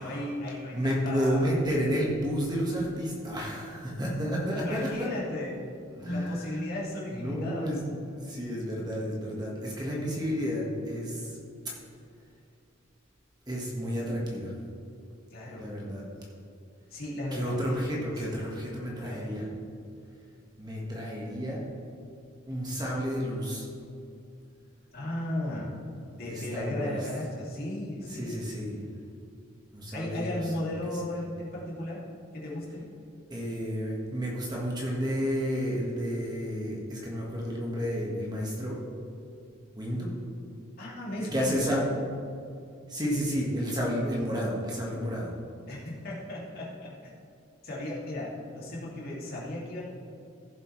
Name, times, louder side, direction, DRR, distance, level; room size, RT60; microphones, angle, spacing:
voice 1, 0.0-1.5 4.5-5.6 6.1-7.8 15.3-15.7 16.9-18.0 18.3-18.6 19.0-19.4 24.9-25.7 26.1-28.5 29.9-32.0 32.3-32.9 40.8-41.7 45.7-47.1 47.6-49.8, left 1 dB, 45° left, -5 dB, 2.5 m, -36 dB
voice 2, 0.7-5.1 6.0-6.6 7.1-11.4 13.5-14.5 15.5-16.1 17.3-19.5 20.6-21.6 22.5-23.7 26.2-27.0 28.1-28.8 29.7-30.7 33.3-38.8 39.7-40.1 41.2-41.8 42.9-45.3, equal, 20° right, -4 dB, 1.5 m, -31 dB
15.5 x 7.6 x 3.2 m, 2.5 s
head